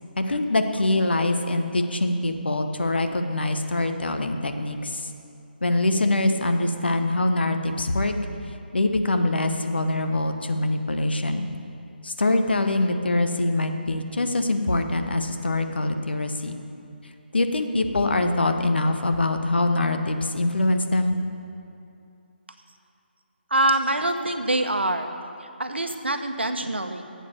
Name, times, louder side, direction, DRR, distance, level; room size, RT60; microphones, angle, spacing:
voice 1, 0.2-5.1 5.6-8.1 8.7-11.5 12.0-16.6 17.3-21.2, left 2 dB, 70° left, 6 dB, 1.1 m, -24 dB
voice 2, 23.5-25.1 25.4-27.0, right 2 dB, 80° right, 6 dB, 1.0 m, -25 dB
11.0 x 7.9 x 6.8 m, 2.6 s
figure-of-eight pair, 150°, 6 cm